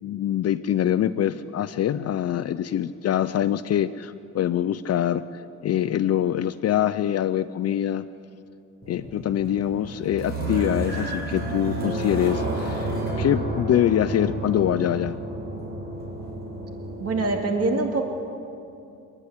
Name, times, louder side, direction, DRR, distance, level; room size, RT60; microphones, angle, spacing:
voice 1, 0.0-8.0 8.9-12.9 13.2-15.2, left 11 dB, 55° left, 14 dB, 0.6 m, -24 dB
sound 1, 8.8-17.4, right 1 dB, 35° right, 7.1 m, -31 dB
voice 2, 17.0-18.0, right 3 dB, 55° right, 3 dB, 2.4 m, -24 dB
29.0 x 10.0 x 10.0 m, 2.6 s
cardioid pair, 90°, 30 cm